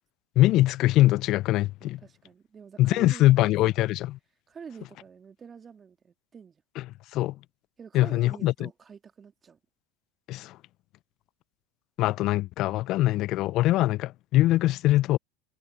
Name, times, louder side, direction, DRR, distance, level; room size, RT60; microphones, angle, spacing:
voice 1, 0.4-2.0 2.8-4.2 6.8-6.9 7.1-7.4 7.9-8.7 10.3-10.6 12.0-15.2, left 16 dB, 55° left, 0.5 m, -23 dB
voice 2, 1.8-3.9 4.5-6.6 7.8-9.6, right 6 dB, 30° right, 2.9 m, -47 dB
hypercardioid pair, 80°, 0 cm